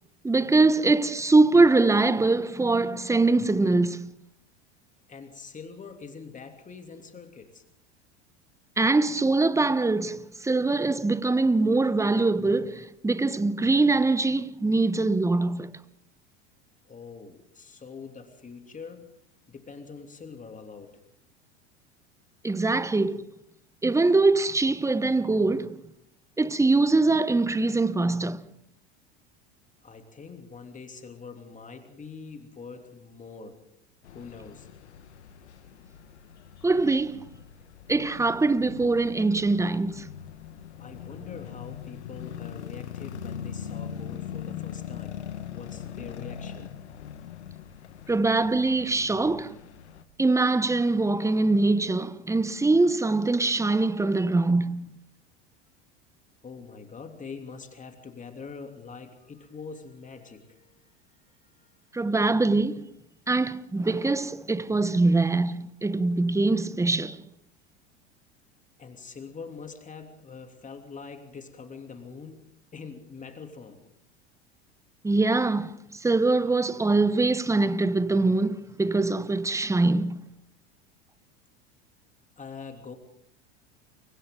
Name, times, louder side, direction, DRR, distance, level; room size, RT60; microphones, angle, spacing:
voice 1, 0.2-4.1 8.8-15.7 22.4-23.3 23.8-25.8 26.4-28.4 36.6-37.3 37.9-40.1 48.1-49.6 50.2-55.0 61.9-62.9 63.3-67.2 75.0-80.2, right 3 dB, 10° right, 1.1 m, -23 dB
voice 2, 5.1-7.6 16.8-19.2 19.5-21.0 29.8-33.6 34.1-34.7 40.8-45.2 45.5-46.7 56.4-62.0 68.8-73.8 82.4-83.0, left 5 dB, 25° left, 3.0 m, -44 dB
sound 1, 34.0-50.0, left 9 dB, 80° left, 1.7 m, -41 dB
29.5 x 24.5 x 3.9 m
hypercardioid pair, 85°, 33 cm